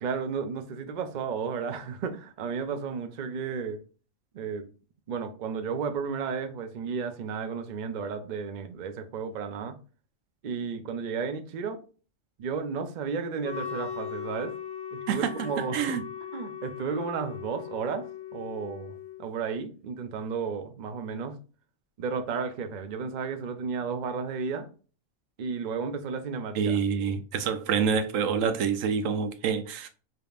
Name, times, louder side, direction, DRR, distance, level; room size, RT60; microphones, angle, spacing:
voice 1, 0.0-3.8 4.3-4.7 5.1-9.8 10.4-11.8 12.4-14.5 14.9-15.8 16.3-18.1 18.3-18.9 19.2-21.4 22.0-24.7 25.4-26.8, right 5 dB, 55° right, 0.5 m, -33 dB
Wind instrument woodwind instrument, 13.4-19.3, left 8 dB, 65° left, 0.9 m, -38 dB
voice 2, 15.1-16.0 26.5-29.9, right 6 dB, 80° right, 1.0 m, -27 dB
5.2 x 2.8 x 2.3 m
omnidirectional pair, 1.3 m